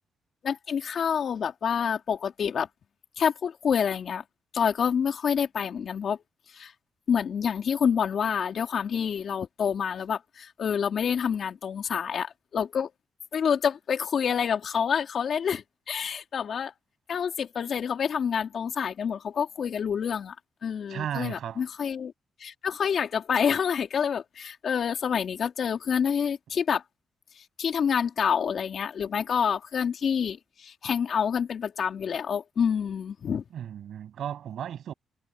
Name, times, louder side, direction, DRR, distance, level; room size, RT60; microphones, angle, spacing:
voice 1, 0.4-2.7 3.2-4.2 4.5-6.2 6.5-6.7 7.1-12.9 13.3-16.7 17.1-20.3 20.6-22.1 22.4-26.8 27.6-33.4, left 7 dB, 60° left, 3.5 m, -27 dB
voice 2, 20.9-21.6 33.5-34.9, right 9 dB, 75° right, 7.3 m, -34 dB
cardioid pair, 85°, 0 cm